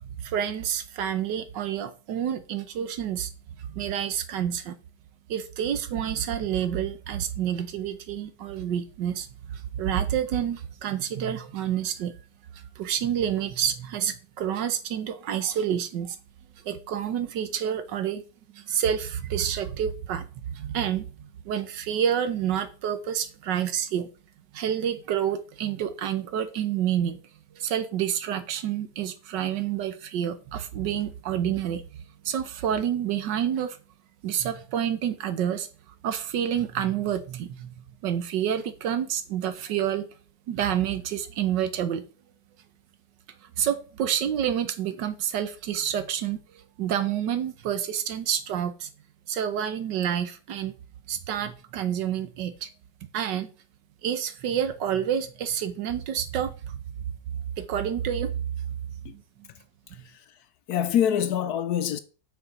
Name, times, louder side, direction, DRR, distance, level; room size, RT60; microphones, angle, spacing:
voice 1, 0.2-3.3 3.6-4.7 5.3-12.1 12.5-16.2 16.6-18.2 18.5-24.1 24.5-27.2 27.5-31.8 32.2-33.8 34.2-35.7 36.0-37.7 38.0-40.1 40.5-42.0 43.6-48.9 49.3-50.7 51.1-52.7 53.1-53.5 54.0-56.8 57.6-58.3 59.1-59.2, right 9 dB, 80° right, 1.5 m, -28 dB
voice 2, 59.9-62.0, left 9 dB, 70° left, 1.0 m, -26 dB
6.7 x 4.8 x 5.1 m
omnidirectional pair, 1.9 m